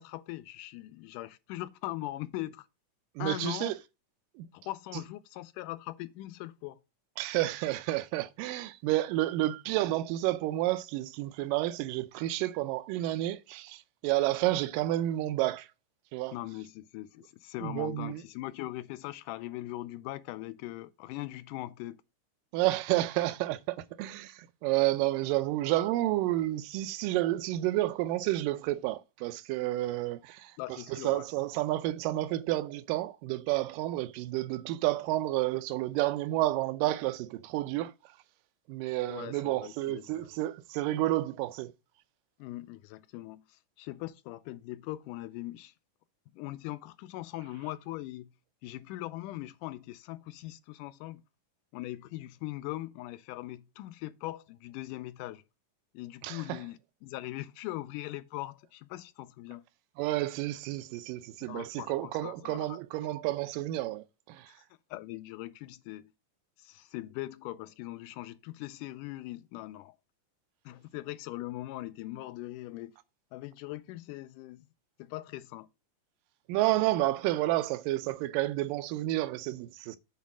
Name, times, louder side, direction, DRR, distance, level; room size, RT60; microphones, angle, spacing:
voice 1, 0.0-2.7 3.2-3.7 4.5-6.8 16.3-22.0 30.6-31.3 39.1-40.3 42.4-45.7 46.3-48.3 48.6-51.2 51.7-55.4 55.9-59.6 61.4-62.8 64.5-64.6 64.9-66.1 66.6-70.0 70.7-72.9 73.3-74.7 75.0-75.7, left 16 dB, 80° left, 2.0 m, -40 dB
voice 2, 3.2-3.7 4.4-4.5 7.2-15.7 16.1-16.4 17.6-18.2 22.5-30.5 31.0-37.9 38.7-41.7 56.2-56.6 60.0-64.5 76.5-80.0, right 16 dB, 85° right, 2.3 m, -30 dB
8.3 x 4.0 x 6.1 m
omnidirectional pair, 3.8 m